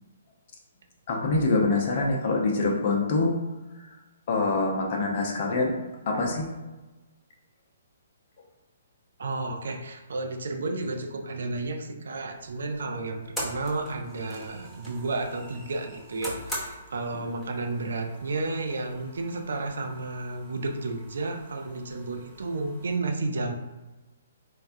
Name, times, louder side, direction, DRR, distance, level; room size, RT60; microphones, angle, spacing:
voice 1, 1.1-3.4 3.9-4.0 4.3-5.8 6.1-6.5, left 3 dB, 45° left, -1 dB, 0.7 m, -25 dB
voice 2, 9.2-23.5, right 3 dB, 60° right, 4 dB, 0.4 m, -32 dB
sound 1, 12.4-23.0, equal, 5° left, 0.8 m, -42 dB
4.0 x 2.2 x 2.6 m, 1.1 s
figure-of-eight pair, 125°, 0 cm